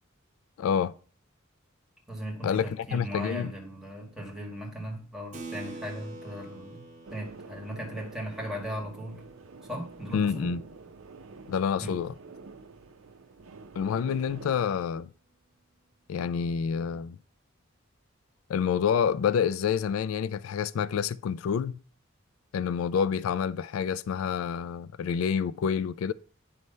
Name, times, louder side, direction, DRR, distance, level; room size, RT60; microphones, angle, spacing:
voice 1, 0.6-0.9 2.4-3.5 10.1-10.6 11.5-12.1 13.8-15.1 16.1-17.2 18.5-21.8 22.5-26.1, left 7 dB, 85° left, 0.3 m, -28 dB
voice 2, 2.1-6.8 7.1-9.2 9.7-10.6 11.8-12.0, equal, 5° right, 1.9 m, -37 dB
Keyboard (musical), 5.3-11.3, right 2 dB, 35° right, 1.0 m, -47 dB
sound 1, 7.0-14.6, right 4 dB, 85° right, 0.6 m, -47 dB
9.3 x 3.2 x 5.4 m
head